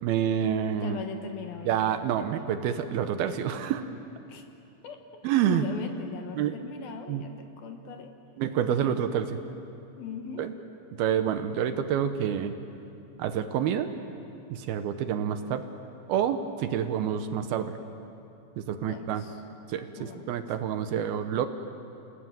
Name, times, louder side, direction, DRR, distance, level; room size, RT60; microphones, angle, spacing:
voice 1, 0.0-1.0 1.7-3.9 5.2-5.6 6.4-6.5 7.1-7.2 8.4-9.3 10.4-10.5 11.0-12.5 13.2-13.9 14.5-15.6 16.1-17.7 18.6-19.2 19.7-21.5, right 9 dB, 75° right, 8 dB, 2.4 m, -28 dB
voice 2, 0.8-1.8 2.3-2.4 4.3-4.4 4.8-8.1 8.7-9.0 10.0-10.4 18.8-19.4 20.0-20.4, left 6 dB, 65° left, 5 dB, 2.7 m, -40 dB
28.0 x 18.5 x 9.2 m, 2.7 s
omnidirectional pair, 5.2 m